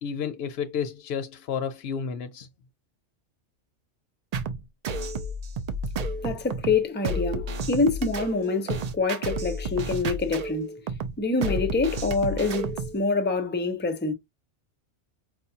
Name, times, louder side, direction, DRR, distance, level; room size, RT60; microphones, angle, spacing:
voice 1, 0.0-2.5, left 7 dB, 65° left, 0.7 m, -31 dB
sound 1, 4.3-13.0, right 2 dB, 65° right, 0.4 m, -31 dB
voice 2, 6.2-10.8 11.2-14.1, left 3 dB, 15° left, 0.4 m, -26 dB
4.9 x 2.3 x 2.7 m
omnidirectional pair, 1.2 m